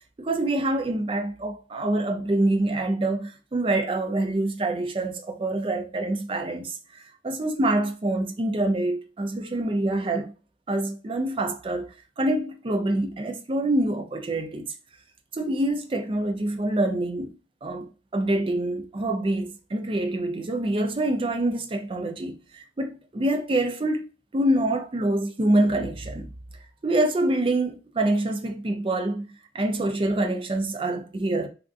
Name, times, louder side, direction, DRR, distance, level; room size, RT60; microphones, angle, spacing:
voice 1, 0.2-10.3 10.7-14.7 15.3-17.3 17.6-24.1 24.3-26.3 26.8-29.3 29.5-31.5, right 1 dB, 30° right, 0.4 m, -26 dB
3.5 x 2.5 x 2.4 m
head